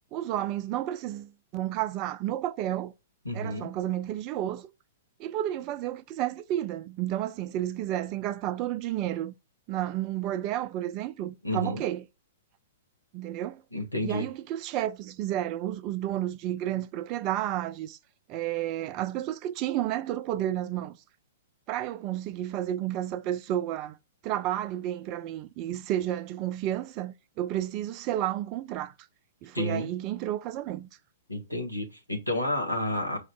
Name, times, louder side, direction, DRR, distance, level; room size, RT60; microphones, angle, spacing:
voice 1, 0.1-2.9 3.3-4.7 5.2-9.3 9.7-12.0 13.1-13.6 14.0-18.0 18.3-21.0 21.7-24.0 24.2-28.9 29.4-30.9, right 12 dB, 35° right, 0.4 m, -31 dB
voice 2, 3.2-3.7 11.4-11.8 13.7-14.3 29.5-29.9 31.3-33.2, left 1 dB, 90° left, 1.0 m, -30 dB
4.9 x 2.5 x 3.3 m
figure-of-eight pair, 110°, 0 cm